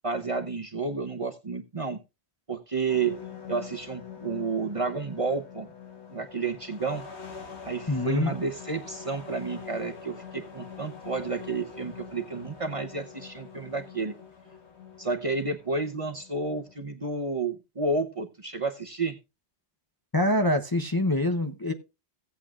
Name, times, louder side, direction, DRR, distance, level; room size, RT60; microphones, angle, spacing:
voice 1, 0.0-2.0 2.5-3.1 3.5-5.7 6.1-7.0 7.6-14.1 15.0-19.2, right 3 dB, 35° right, 5 dB, 0.8 m, -31 dB
sound 1, 2.9-16.7, left 6 dB, 80° left, 2.1 m, -45 dB
voice 2, 7.9-8.3 20.1-21.7, left 1 dB, 25° left, 5 dB, 0.7 m, -25 dB
16.5 x 8.4 x 2.4 m, 0.26 s
omnidirectional pair, 1.1 m